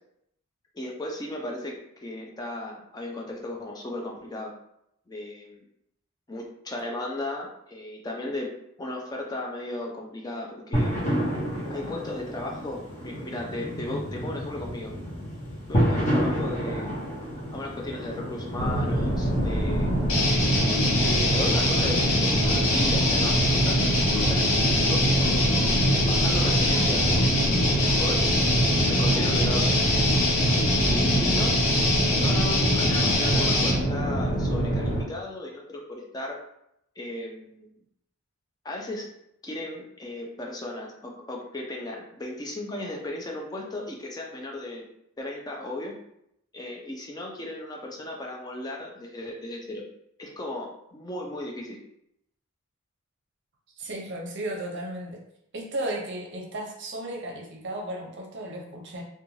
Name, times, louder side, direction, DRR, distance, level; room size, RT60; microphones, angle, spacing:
voice 1, 0.7-4.5 5.1-5.6 6.3-8.5 8.8-10.9 11.7-14.9 15.7-17.0 17.5-20.0 20.9-27.3 28.0-30.0 30.8-31.6 32.2-36.4 37.0-37.7 38.6-39.1 39.4-44.9 45.2-46.0 46.5-49.8 50.2-51.8, left 1 dB, 20° left, -1 dB, 0.4 m, -35 dB
sound 1, 10.7-28.7, equal, 35° left, 0.8 m, -32 dB
sound 2, 18.6-35.0, right 1 dB, 55° left, 1.4 m, -25 dB
sound 3, 20.1-33.8, left 2 dB, 70° left, 0.7 m, -24 dB
voice 2, 53.8-55.2 55.5-59.0, right 1 dB, 55° right, 0 dB, 0.6 m, -34 dB
2.5 x 2.2 x 3.0 m, 0.78 s
head